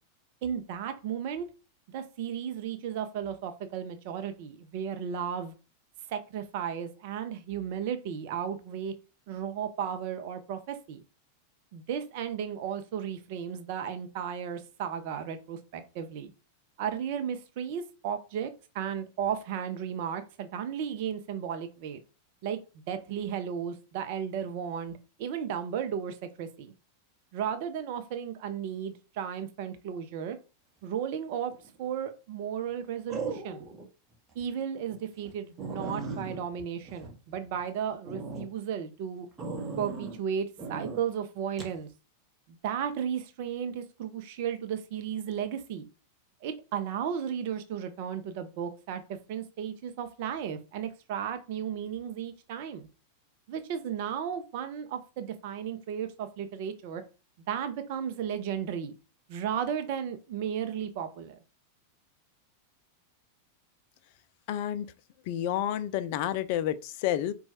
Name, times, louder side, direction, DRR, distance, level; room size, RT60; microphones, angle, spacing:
voice 1, 0.4-1.5 1.9-5.5 6.1-8.9 9.3-11.0 11.7-16.3 16.8-22.0 22.4-22.6 22.9-26.7 27.3-30.4 30.8-31.5 31.8-33.7 34.3-39.3 39.8-41.9 42.5-45.9 46.4-52.9 53.5-57.0 57.5-58.9 59.3-61.4, right 8 dB, 50° right, 0.5 m, -34 dB
sound 1, 31.5-31.9 33.1-33.9 34.3-34.4 34.9-35.0 35.3-35.4 35.6-37.6 38.0-38.5 39.4-40.2 40.6-41.0 41.6-41.8, right 3 dB, 20° right, 1.0 m, -38 dB
voice 2, 64.5-64.9 65.3-67.3, left 11 dB, 45° left, 0.3 m, -30 dB
4.2 x 2.3 x 2.8 m
figure-of-eight pair, 90°, 0 cm